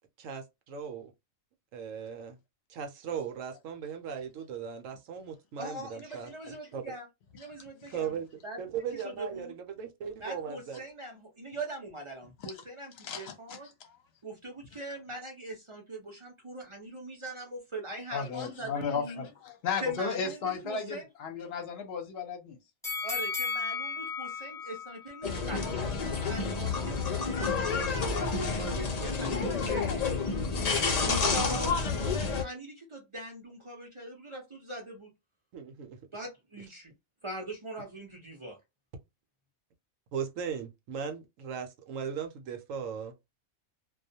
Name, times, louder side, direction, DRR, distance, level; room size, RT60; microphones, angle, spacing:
voice 1, 0.2-1.1 1.7-2.4 2.7-6.9 7.9-8.3 8.6-10.8 35.5-36.0 40.1-43.1, right 7 dB, 75° right, 0.9 m, -38 dB
voice 2, 5.6-7.1 7.3-8.2 8.4-8.6 9.0-9.5 10.2-13.7 14.2-19.2 19.8-21.1 23.0-25.9 26.2-30.0 31.0-35.1 36.1-36.9 37.2-38.6, right 1 dB, 35° right, 0.5 m, -41 dB
voice 3, 13.0-14.0 18.1-22.6, left 6 dB, 55° left, 0.8 m, -35 dB
sound 1, 22.8-25.9 26.3-26.4, left 4 dB, 5° left, 0.6 m, -35 dB
sound 2, 25.2-32.4, left 4 dB, 80° left, 0.3 m, -29 dB
2.3 x 2.2 x 2.7 m
omnidirectional pair, 1.5 m